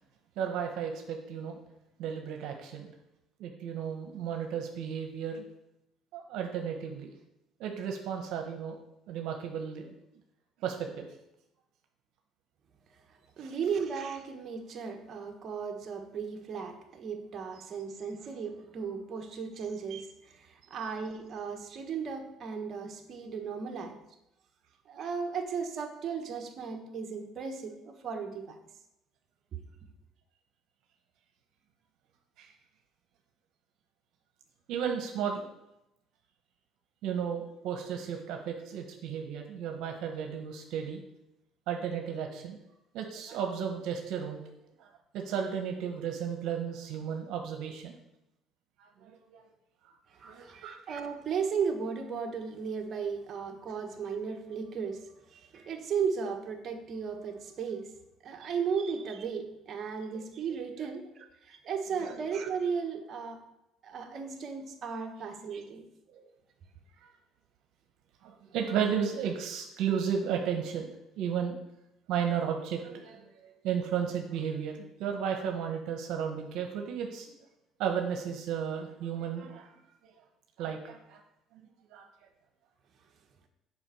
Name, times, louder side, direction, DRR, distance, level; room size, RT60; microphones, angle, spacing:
voice 1, 0.4-1.6 2.0-2.9 3.4-5.4 6.1-7.1 7.6-8.8 9.1-9.9 10.6-11.1 13.4-13.5 32.4-32.5 34.7-35.5 37.0-41.0 41.7-42.6 42.9-44.4 44.8-44.9 45.1-48.0 48.8-49.4 50.2-50.8 60.1-60.2 60.8-60.9 62.0-62.2 66.1-66.3 67.0-67.1 68.2-70.9 71.2-71.6 72.1-77.3 77.8-79.7 80.0-80.1 80.6-81.2 81.5-82.1, right 7 dB, 75° right, 4 dB, 1.2 m, -34 dB
voice 2, 13.4-24.0 24.9-28.6 50.2-57.9 58.2-63.4 63.8-65.8, right 6 dB, 45° right, 3 dB, 1.4 m, -35 dB
7.2 x 5.2 x 7.0 m, 0.86 s
supercardioid pair, 95°, 0 cm